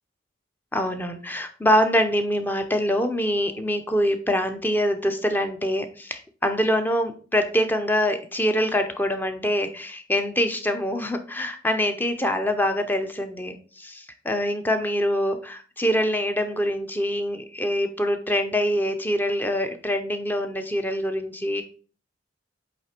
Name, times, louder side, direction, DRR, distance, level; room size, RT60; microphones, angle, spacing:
voice 1, 0.7-21.6, equal, 10° left, 7 dB, 0.6 m, -24 dB
8.2 x 3.3 x 4.4 m, 0.39 s
head